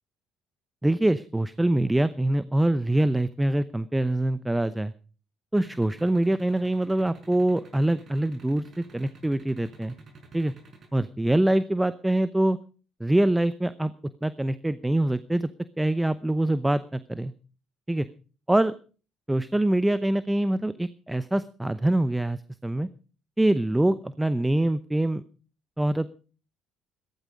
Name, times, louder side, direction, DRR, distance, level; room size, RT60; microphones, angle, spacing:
voice 1, 0.8-4.9 5.5-9.9 10.3-10.5 10.9-12.6 13.0-13.9 14.2-15.5 15.8-17.3 17.9-18.1 18.5-18.7 19.3-22.9 23.4-25.2 25.8-26.1, right 1 dB, 10° right, 15 dB, 0.8 m, -24 dB
sound 1, 5.6-10.9, right 4 dB, 45° right, 5.4 m, -49 dB
16.5 x 13.5 x 5.1 m, 0.38 s
supercardioid pair, 65°, 0 cm